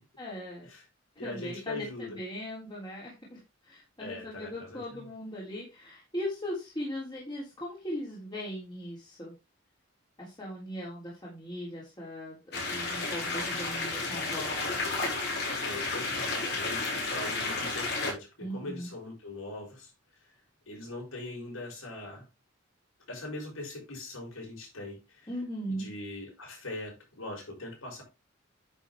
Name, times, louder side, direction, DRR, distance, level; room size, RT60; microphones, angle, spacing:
voice 1, 0.2-0.7 1.2-9.3 10.2-14.5 18.4-18.9 25.3-25.9, equal, 20° left, 3.3 m, -39 dB
voice 2, 1.2-2.2 4.0-5.1 15.4-19.9 20.7-22.3 23.1-25.2 25.7-28.0, left 2 dB, 90° left, 6.1 m, -41 dB
sound 1, 12.5-18.1, left 3 dB, 55° left, 4.9 m, -32 dB
10.0 x 7.1 x 3.6 m
head